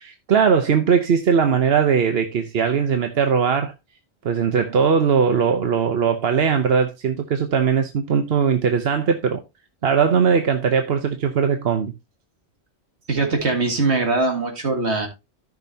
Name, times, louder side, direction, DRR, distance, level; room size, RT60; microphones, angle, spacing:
voice 1, 0.0-3.7 4.2-9.4 9.8-11.9, right 6 dB, 70° right, 1.0 m, -19 dB
voice 2, 13.1-15.1, right 3 dB, 85° right, 2.3 m, -21 dB
13.5 x 6.2 x 2.7 m
omnidirectional pair, 1.1 m